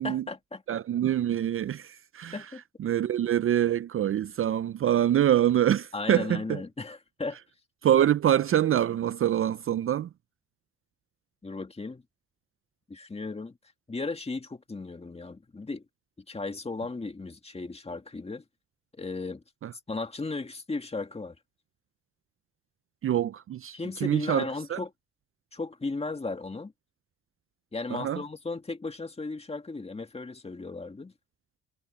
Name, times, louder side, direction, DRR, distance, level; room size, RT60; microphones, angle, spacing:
voice 1, 0.0-0.6 2.3-2.6 5.9-7.4 11.4-12.0 12.9-13.6 13.9-15.8 16.3-18.4 18.9-19.4 19.9-21.4 23.7-24.9 25.5-26.7 27.7-31.1, left 3 dB, 20° left, 2.1 m, -35 dB
voice 2, 0.7-2.4 2.8-6.6 7.8-10.1 19.6-19.7 23.0-24.8 27.9-28.2, right 11 dB, 45° right, 0.5 m, -25 dB
cardioid pair, 90°, 30 cm